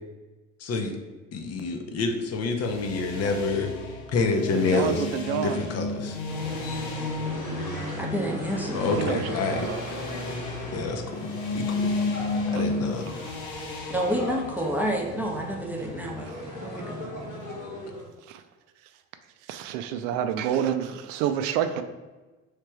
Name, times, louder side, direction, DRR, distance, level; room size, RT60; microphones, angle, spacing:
voice 1, 0.6-1.0 1.3-3.7 4.1-5.1 5.4-6.2 8.7-9.7 10.7-11.3 11.5-11.9 12.5-13.1, left 4 dB, 35° left, 5 dB, 0.7 m, -27 dB
sound 1, 2.5-16.1, left 3 dB, 65° left, 1.0 m, -33 dB
voice 2, 4.5-5.6 9.0-9.8 12.5-12.6 16.3-16.4 18.3-18.4 19.5-21.8, right 9 dB, 65° right, 9 dB, 0.5 m, -28 dB
sound 2, 6.3-18.0, left 1 dB, 80° left, 1.4 m, -37 dB
voice 3, 8.0-9.0 13.9-16.3 16.6-17.1, equal, 5° right, 0 dB, 0.8 m, -29 dB
3.3 x 3.2 x 4.4 m, 1.2 s
figure-of-eight pair, 65°, 41 cm